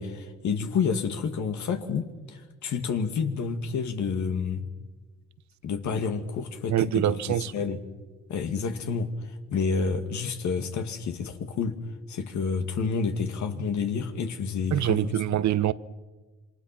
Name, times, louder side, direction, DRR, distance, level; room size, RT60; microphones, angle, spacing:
voice 1, 0.0-4.6 5.6-7.8 8.3-11.8 12.1-15.2, left 5 dB, 70° left, 2.3 m, -29 dB
voice 2, 6.7-7.5 14.7-15.7, right 12 dB, 70° right, 1.0 m, -24 dB
27.0 x 24.5 x 5.9 m
supercardioid pair, 65°, 30 cm